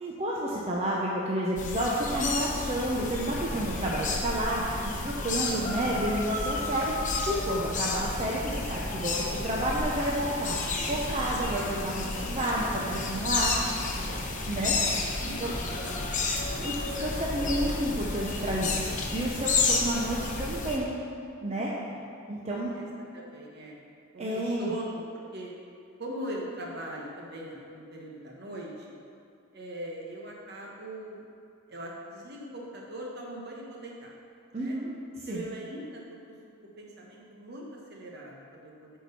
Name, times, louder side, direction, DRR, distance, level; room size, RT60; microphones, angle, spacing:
voice 1, 0.0-9.2 9.4-13.5 14.5-14.8 15.4-15.5 16.6-20.9 21.4-21.7 22.3-22.7 24.2-24.7 34.5-34.9 35.2-35.4, right 1 dB, 30° right, -4 dB, 0.7 m, -30 dB
sound 1, 1.6-20.8, left 3 dB, 40° left, 0.9 m, -31 dB
voice 2, 14.5-16.2 21.9-22.0 22.5-22.9 23.1-23.8 24.1-25.5 26.0-29.0 29.5-31.2 31.7-34.1 34.5-34.8 35.3-36.3 36.8-39.0, right 1 dB, 55° right, -2 dB, 1.3 m, -41 dB
8.5 x 4.7 x 5.4 m, 2.4 s
head